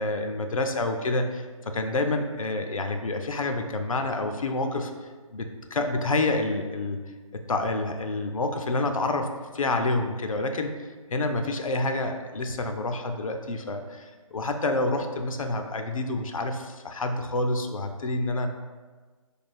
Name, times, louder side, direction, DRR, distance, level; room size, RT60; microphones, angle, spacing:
voice 1, 0.0-7.0 7.3-9.3 9.5-10.7 11.1-18.5, left 2 dB, 70° left, 5 dB, 0.4 m, -28 dB
3.3 x 2.3 x 4.4 m, 1.4 s
figure-of-eight pair, 140°, 18 cm